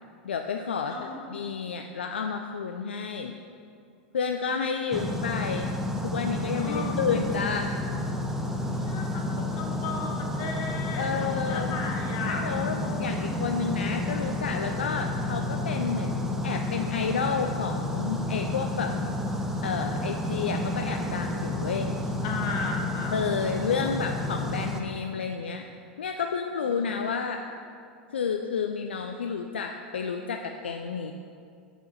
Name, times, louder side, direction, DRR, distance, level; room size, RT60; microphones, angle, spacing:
voice 1, 0.2-3.3 4.1-5.8 6.0-7.7 11.0-11.8 12.2-18.9 19.6-22.1 23.1-25.6 26.0-27.4 28.1-31.1, left 6 dB, 85° left, 5 dB, 0.3 m, -30 dB
sound 1, 4.9-24.8, left 1 dB, 5° right, 0.7 m, -30 dB
voice 2, 6.6-7.0 8.7-12.4 12.8-13.3 22.2-23.2 26.7-26.8, left 4 dB, 55° left, 1 dB, 1.3 m, -35 dB
6.6 x 4.7 x 6.1 m, 2.4 s
hypercardioid pair, 95°, 6 cm